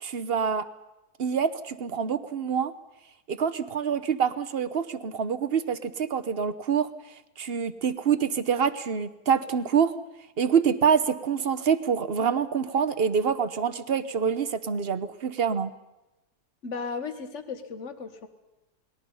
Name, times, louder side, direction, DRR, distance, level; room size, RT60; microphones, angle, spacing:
voice 1, 0.0-0.7 1.2-2.7 3.3-6.9 7.4-10.0 10.4-15.7, right 7 dB, 40° right, 12 dB, 1.1 m, -26 dB
voice 2, 16.6-18.3, left 5 dB, 45° left, 8 dB, 1.9 m, -35 dB
29.5 x 20.5 x 5.6 m, 0.99 s
omnidirectional pair, 1.8 m